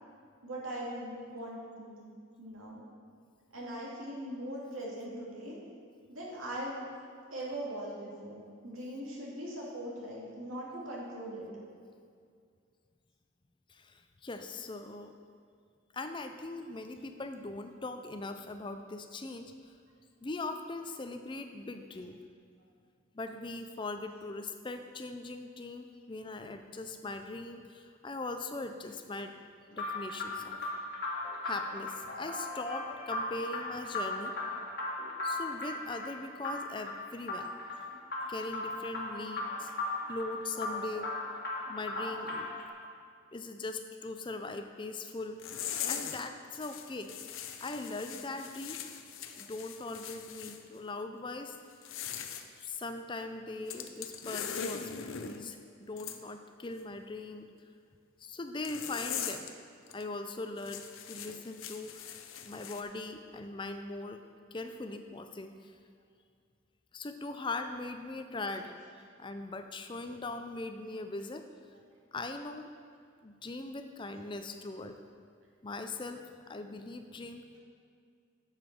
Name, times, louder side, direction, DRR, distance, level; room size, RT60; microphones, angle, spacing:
voice 1, 0.4-2.0 2.4-2.8 3.5-5.6 6.1-6.9 7.3-11.5 74.2-74.3, right 1 dB, 85° right, -4 dB, 2.5 m, -40 dB
voice 2, 13.7-15.1 15.9-19.7 20.2-22.2 23.1-29.3 29.7-30.7 31.4-34.4 35.2-37.5 38.3-39.7 40.1-41.1 41.7-42.5 43.3-45.5 45.9-47.1 47.6-48.8 49.3-51.6 52.6-57.5 58.2-59.4 59.9-62.1 62.4-64.2 64.5-65.7 66.9-68.7 69.2-71.4 72.1-72.7 73.2-75.0 75.6-77.6, left 2 dB, 25° left, 7 dB, 0.5 m, -40 dB
sound 1, 29.7-42.7, left 2 dB, 50° left, 1.6 m, -37 dB
sound 2, 45.4-46.2 46.5-50.6 51.7-52.4 53.7-55.4 56.0-56.2 58.6-59.5 59.9-60.0 60.6-62.8, left 7 dB, 75° left, 0.6 m, -40 dB
7.8 x 7.4 x 6.0 m, 2.2 s
head